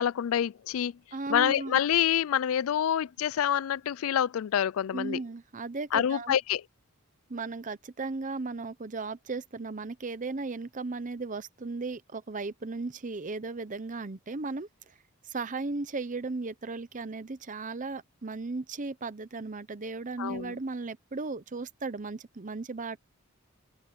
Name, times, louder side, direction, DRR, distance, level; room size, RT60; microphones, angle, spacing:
voice 1, 0.0-0.9 1.3-5.2 5.9-6.6 20.2-20.6, left 9 dB, 75° left, 0.3 m, -27 dB
voice 2, 1.1-1.8 4.9-6.3 7.3-14.9 15.3-23.0, right 3 dB, 35° right, 0.8 m, -36 dB
open air
head